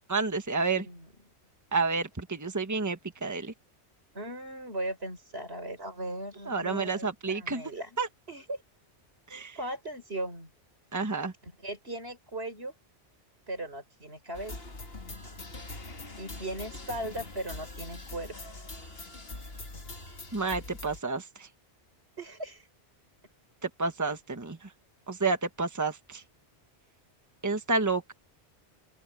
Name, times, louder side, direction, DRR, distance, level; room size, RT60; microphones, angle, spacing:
voice 1, 0.1-0.8 1.7-3.5 6.5-7.7 8.0-8.1 9.3-9.6 10.9-11.3 20.3-21.5 23.6-24.7 25.1-26.2 27.4-28.1, right 4 dB, 15° right, 1.3 m, -30 dB
voice 2, 4.1-8.0 8.3-8.6 9.6-10.5 11.4-12.7 13.5-14.6 16.2-18.4 22.2-22.7, right 1 dB, 65° right, 5.2 m, -38 dB
sound 1, 14.3-21.0, left 2 dB, 60° left, 2.3 m, -43 dB
open air
omnidirectional pair, 1.2 m